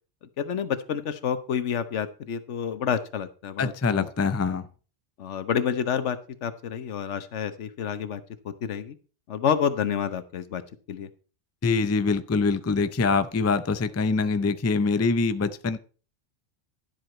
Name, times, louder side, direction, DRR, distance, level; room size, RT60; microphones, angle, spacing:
voice 1, 0.2-4.1 5.2-9.0 9.3-10.6 10.9-11.1, left 8 dB, 80° left, 13 dB, 1.2 m, -29 dB
voice 2, 3.6-4.7 11.6-15.8, left 4 dB, 25° left, 12 dB, 0.3 m, -24 dB
12.0 x 7.8 x 4.3 m, 0.37 s
omnidirectional pair, 1.2 m